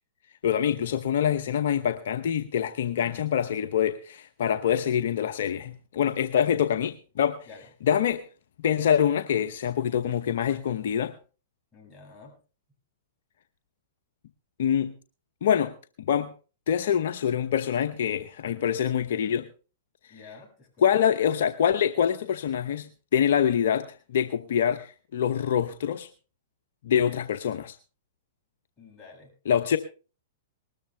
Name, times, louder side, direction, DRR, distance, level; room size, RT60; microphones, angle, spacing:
voice 1, 0.4-7.4 7.8-8.2 8.6-11.1 14.6-14.9 15.4-15.7 16.0-16.3 16.7-19.5 20.8-26.1 26.8-27.8 29.5-29.8, left 9 dB, 65° left, 0.8 m, -25 dB
voice 2, 11.7-12.3 20.1-21.0 28.8-29.3, left 4 dB, 20° left, 7.4 m, -49 dB
19.5 x 13.5 x 3.3 m
hypercardioid pair, 120°, 0 cm